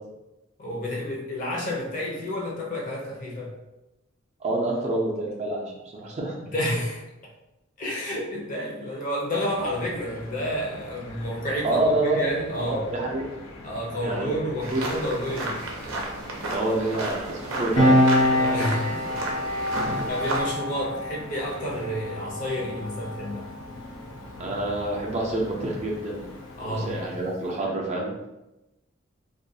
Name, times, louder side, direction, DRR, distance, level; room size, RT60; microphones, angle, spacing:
voice 1, 0.6-3.6 6.5-7.1 7.8-12.9 13.6-15.6 18.3-19.1 19.6-23.5 26.6-27.2, equal, 40° left, -3 dB, 0.6 m, -30 dB
voice 2, 4.4-5.6 5.9-6.3 11.6-12.2 12.6-13.2 14.0-14.3 14.7-14.8 16.5-18.0 19.7-20.0 24.4-26.2 26.6-28.1, right 2 dB, 35° right, -2 dB, 0.4 m, -27 dB
sound 1, 9.5-27.1, left 2 dB, 85° left, 0.5 m, -44 dB
sound 2, 14.6-20.5, right 2 dB, 90° right, 0.5 m, -32 dB
Piano, 17.8-24.8 25.1-25.3, left 1 dB, 60° left, 0.9 m, -25 dB
2.4 x 2.2 x 2.6 m, 0.96 s
head